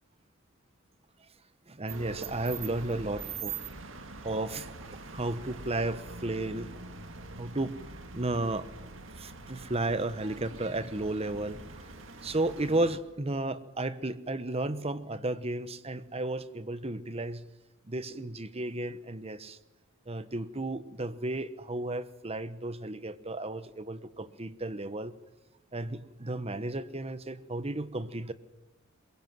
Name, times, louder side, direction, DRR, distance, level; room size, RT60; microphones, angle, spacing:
voice 1, 1.7-3.6 4.2-4.7 5.1-6.9 7.4-7.8 8.1-8.7 9.2-11.9 12.2-17.4 17.9-19.6 20.1-25.1 25.7-28.3, right 2 dB, 30° right, 1.1 m, -33 dB
sound 1, 1.9-13.0, right 4 dB, 65° right, 2.2 m, -44 dB
22.5 x 22.5 x 7.7 m
head